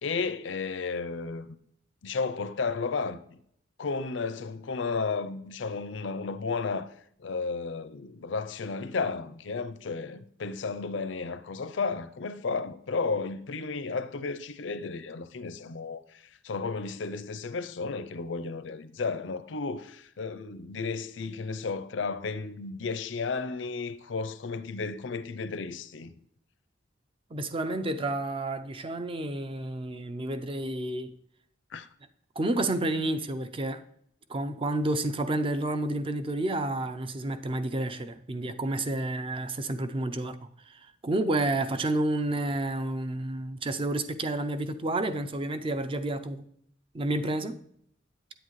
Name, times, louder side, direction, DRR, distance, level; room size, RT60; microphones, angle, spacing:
voice 1, 0.0-1.6 2.0-3.4 3.8-6.9 7.2-26.1 31.7-31.9, left 4 dB, 75° left, 0.5 m, -33 dB
voice 2, 27.3-31.1 32.4-33.8 34.3-40.4 40.7-46.5 46.9-47.6, right 2 dB, 30° right, 0.5 m, -30 dB
8.8 x 7.8 x 3.1 m
head